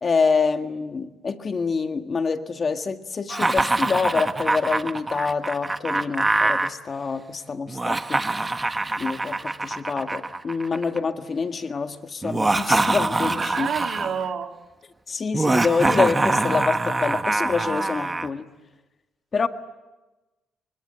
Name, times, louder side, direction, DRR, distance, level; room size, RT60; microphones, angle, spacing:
voice 1, 0.0-8.2 9.0-13.7 15.1-18.5 19.3-19.5, left 5 dB, 40° left, 7 dB, 1.8 m, -26 dB
Laughter, 3.3-6.7 7.7-11.0 12.2-14.2 15.3-18.3, right 2 dB, 20° right, 1.3 m, -24 dB
voice 2, 13.2-14.5, right 7 dB, 60° right, 4 dB, 3.4 m, -29 dB
29.0 x 25.0 x 8.0 m, 1.1 s
cardioid pair, 90°, 0 cm